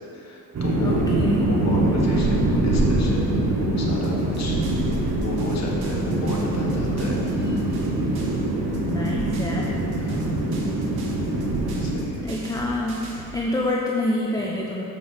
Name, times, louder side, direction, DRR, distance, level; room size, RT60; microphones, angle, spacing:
voice 1, 0.1-1.1 1.3-4.6 5.2-7.2 10.0-10.4 11.8-12.3, left 2 dB, 45° left, -3 dB, 1.6 m, -33 dB
sound 1, 0.5-12.0, right 1 dB, 45° right, 1.5 m, -23 dB
voice 2, 0.8-1.5 8.8-9.7 12.2-14.8, left 1 dB, 10° left, -2 dB, 0.6 m, -27 dB
sound 2, 4.0-11.8, equal, 5° right, 1.7 m, -41 dB
sound 3, 4.0-8.5 8.7-13.4, right 3 dB, 85° right, 1.1 m, -37 dB
7.2 x 5.3 x 5.0 m, 3.0 s
cardioid pair, 95°, 36 cm